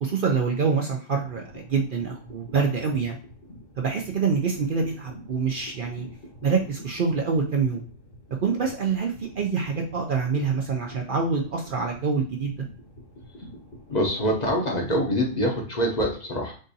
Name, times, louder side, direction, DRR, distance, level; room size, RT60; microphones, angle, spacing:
voice 1, 0.0-3.2 3.8-6.1 6.4-7.8 8.4-12.7, right 5 dB, 55° right, 1 dB, 0.6 m, -26 dB
sound 1, 1.2-15.4, equal, 70° left, 1.7 m, -46 dB
voice 2, 13.9-16.5, equal, 40° left, 0 dB, 0.8 m, -25 dB
7.4 x 2.6 x 2.7 m, 0.42 s
omnidirectional pair, 1.3 m